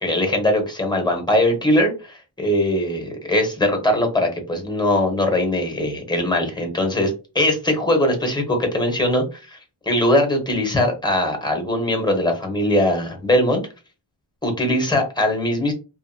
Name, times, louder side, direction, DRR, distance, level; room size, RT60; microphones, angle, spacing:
voice 1, 0.0-9.6 9.9-13.6 14.4-15.7, left 1 dB, 10° left, 4 dB, 0.9 m, -21 dB
2.8 x 2.5 x 2.6 m, 0.30 s
wide cardioid pair, 70°, 48 cm